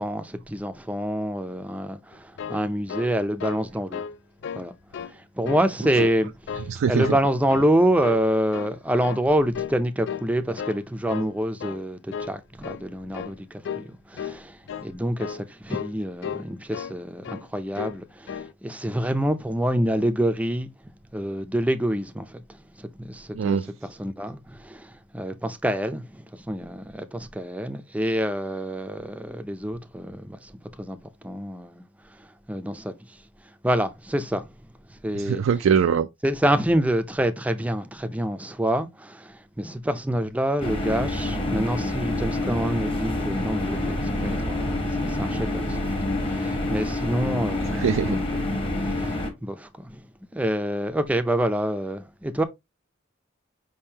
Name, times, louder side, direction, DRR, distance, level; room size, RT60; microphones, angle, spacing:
voice 1, 0.0-4.0 4.5-4.7 5.1-20.7 21.1-22.4 22.8-30.5 30.8-31.8 32.2-33.2 33.6-34.5 34.9-35.7 36.2-48.3 49.0-49.1 49.4-50.1 50.3-52.4, right 1 dB, 5° right, 0.5 m, -27 dB
sound 1, 2.1-3.7 3.9-4.2 4.4-5.1 5.4-6.2 6.5-7.2 7.5-7.7 8.0-8.8 9.0-9.3 9.5-9.8 10.1-10.8 11.1-11.3 11.6-11.8 12.1-12.4 12.6-12.9 13.1-13.4 13.6-13.9 14.1-14.4 14.7-14.9 15.2-15.4 15.7-15.9 16.2-17.0 17.2-17.5 17.7-18.0 18.3-18.5, left 7 dB, 60° left, 0.3 m, -34 dB
voice 2, 6.7-7.0 23.4-23.6 35.3-36.1 47.8-48.1, right 7 dB, 80° right, 0.3 m, -21 dB
sound 2, 40.6-49.3, left 1 dB, 25° left, 1.0 m, -27 dB
5.3 x 3.6 x 2.7 m
head